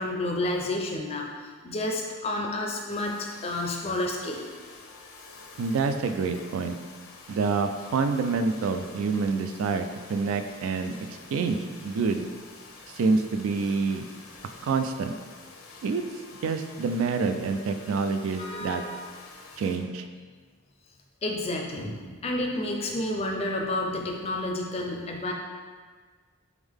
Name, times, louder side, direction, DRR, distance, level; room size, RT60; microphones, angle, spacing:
voice 1, 0.0-4.4 18.4-19.1 19.5-19.6 21.2-25.3, left 1 dB, 30° left, 1 dB, 0.4 m, -30 dB
Domestic sounds home sounds, 2.9-19.8, left 3 dB, 85° left, 0.6 m, -48 dB
voice 2, 5.6-6.8 7.3-11.6 11.8-12.3 12.9-14.1 14.6-15.1 15.8-16.0 16.4-18.8 19.6-20.0, right 4 dB, 70° right, 7 dB, 0.3 m, -27 dB
3.6 x 3.5 x 3.5 m, 1.5 s
head